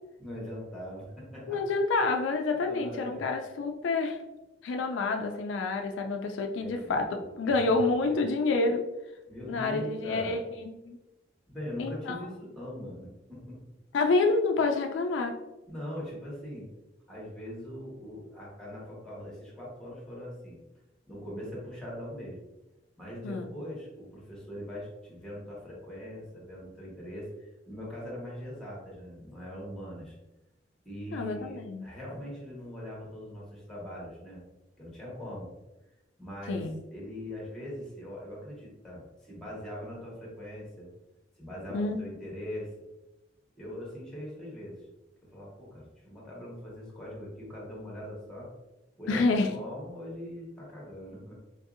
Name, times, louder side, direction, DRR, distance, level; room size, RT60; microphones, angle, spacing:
voice 1, 0.2-1.6 2.5-3.3 6.6-7.4 8.0-8.1 9.3-10.4 11.5-13.6 15.7-16.7 17.1-20.6 21.1-22.4 23.0-30.2 30.8-34.4 34.8-35.5 36.2-40.9 41.4-42.7 43.5-44.8 45.3-48.5 49.0-51.4, equal, 5° left, -5 dB, 1.2 m, -41 dB
voice 2, 1.5-4.2 4.6-8.9 9.5-11.0 11.8-12.2 13.9-15.4 23.2-23.5 31.1-31.8 36.5-36.7 41.7-42.0 49.1-49.6, left 3 dB, 80° left, 4 dB, 0.3 m, -28 dB
3.9 x 2.7 x 2.4 m, 1.0 s
head